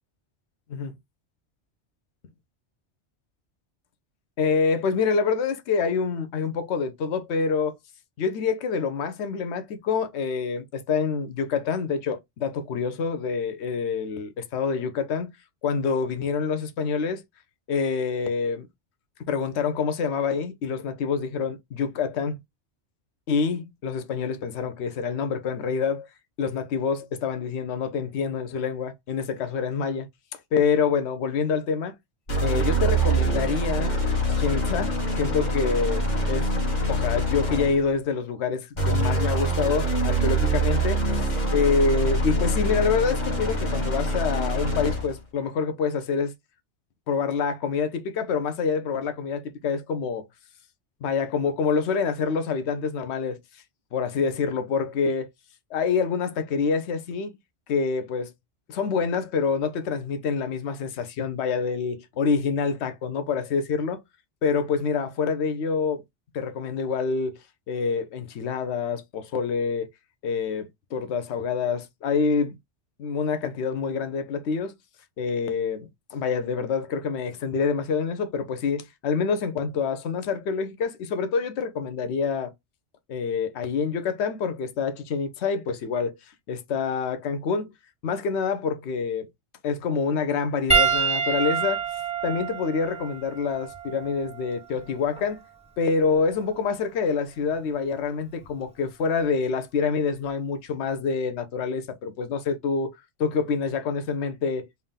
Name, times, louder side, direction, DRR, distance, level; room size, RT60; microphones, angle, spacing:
voice 1, 4.4-7.8 8.2-15.3 15.6-17.2 17.7-18.7 19.3-22.4 23.3-26.1 26.4-30.1 30.5-32.0 32.4-33.9 34.3-36.6 36.9-46.3 47.1-50.2 51.0-53.4 53.9-55.3 55.7-57.3 57.7-58.3 58.7-64.0 64.4-66.0 66.3-67.4 67.7-69.9 70.2-72.5 73.0-74.7 75.2-82.5 83.1-86.2 86.5-87.7 88.0-89.3 89.6-91.8 92.2-95.4 95.8-102.9 103.2-104.7, left 5 dB, 70° left, 1.0 m, -26 dB
sound 1, 32.3-37.9 38.8-45.2, right 1 dB, 40° left, 1.3 m, -25 dB
Piano, 90.7-95.4 96.3-96.5 98.4-98.5, right 5 dB, 5° right, 0.8 m, -27 dB
3.5 x 2.8 x 3.6 m
omnidirectional pair, 1.2 m